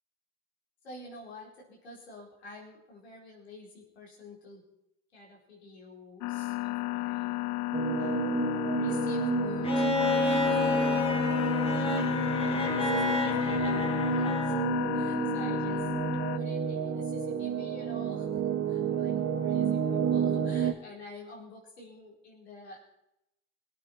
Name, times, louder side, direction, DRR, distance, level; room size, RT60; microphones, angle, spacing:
voice 1, 0.8-4.6 5.1-7.3 7.9-11.1 11.8-14.6 14.9-15.9 16.3-18.3 18.7-22.8, left 1 dB, 85° left, -2 dB, 4.4 m, -47 dB
sound 1, 6.2-16.4, left 20 dB, 60° left, 0.6 m, -32 dB
sound 2, 7.7-20.7, right 7 dB, 50° right, 2.0 m, -30 dB
Bowed string instrument, 9.6-14.7 16.1-16.2, left 3 dB, 20° left, 2.6 m, -31 dB
23.0 x 9.1 x 4.5 m, 0.84 s
hypercardioid pair, 60°, 32 cm